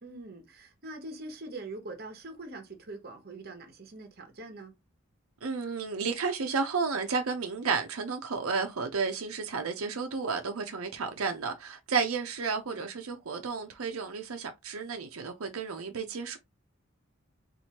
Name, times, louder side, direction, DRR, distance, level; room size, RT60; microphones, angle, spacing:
voice 1, 0.0-4.7 12.7-12.8, right 2 dB, 45° right, 1.0 m, -43 dB
voice 2, 5.4-16.4, right 5 dB, 85° right, 0.7 m, -32 dB
4.3 x 2.6 x 2.9 m
head